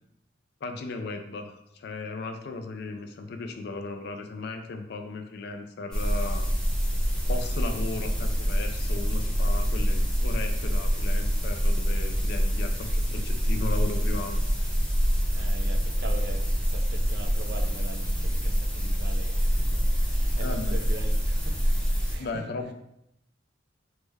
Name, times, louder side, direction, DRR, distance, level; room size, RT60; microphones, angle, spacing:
voice 1, 0.6-6.5 7.3-14.4 20.4-20.8 22.2-22.7, left 3 dB, 60° left, 6 dB, 0.4 m, -36 dB
sound 1, 5.9-22.1, equal, 5° left, 0.8 m, -26 dB
voice 2, 15.3-22.4, right 2 dB, 60° right, 5 dB, 0.4 m, -42 dB
3.3 x 2.1 x 3.3 m, 0.80 s
head